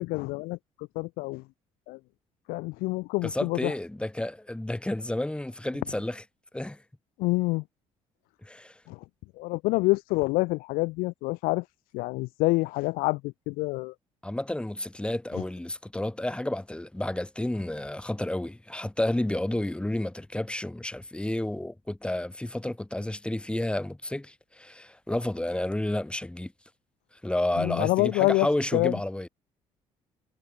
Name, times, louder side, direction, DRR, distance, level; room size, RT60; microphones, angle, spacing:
voice 1, 0.0-1.4 1.9-2.0 2.5-3.7 7.2-7.6 8.9-9.0 9.4-11.6 11.9-13.9 27.6-28.5 28.7-28.9, left 23 dB, 70° left, 0.8 m, -27 dB
voice 2, 3.2-6.2 6.5-6.8 8.4-8.7 14.2-26.5 27.2-29.3, left 1 dB, 5° left, 1.0 m, -31 dB
hypercardioid pair, 55°, 15 cm